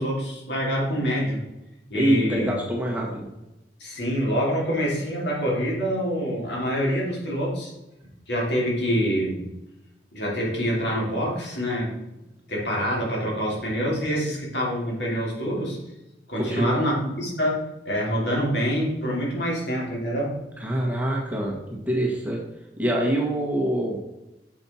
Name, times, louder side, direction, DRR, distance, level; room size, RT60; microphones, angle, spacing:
voice 1, 0.0-1.4 1.9-2.5 3.8-7.7 8.3-9.4 10.1-11.9 12.5-15.8 16.3-20.4, equal, 75° left, -4 dB, 2.9 m, -26 dB
voice 2, 1.9-3.3 16.4-16.8 20.6-22.4 22.8-24.0, right 1 dB, 10° right, -2 dB, 1.5 m, -25 dB
7.0 x 5.6 x 4.3 m, 0.95 s
head